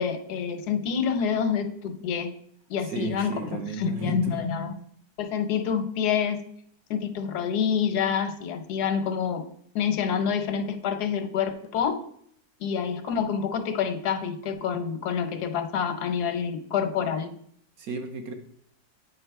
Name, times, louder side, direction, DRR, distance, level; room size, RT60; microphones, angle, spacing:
voice 1, 0.0-2.3 2.7-4.8 5.2-6.4 6.9-9.4 9.7-12.0 12.6-17.3, left 7 dB, 90° left, 10 dB, 1.3 m, -27 dB
voice 2, 2.8-4.4 17.8-18.3, right 3 dB, 70° right, 5 dB, 1.4 m, -34 dB
8.5 x 3.7 x 4.6 m, 0.66 s
omnidirectional pair, 1.7 m